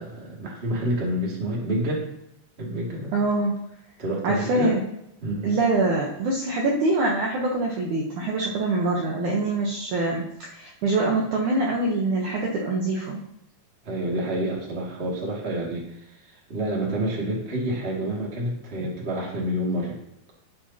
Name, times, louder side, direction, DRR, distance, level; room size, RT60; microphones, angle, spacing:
voice 1, 0.0-2.1 2.6-3.1 4.0-4.7 5.2-5.6 13.8-20.0, right 1 dB, 30° right, -3 dB, 1.1 m, -28 dB
voice 2, 3.1-3.5 4.2-4.8 5.4-13.2, right 2 dB, 85° right, -2 dB, 1.7 m, -24 dB
10.0 x 8.6 x 2.9 m, 0.82 s
omnidirectional pair, 5.1 m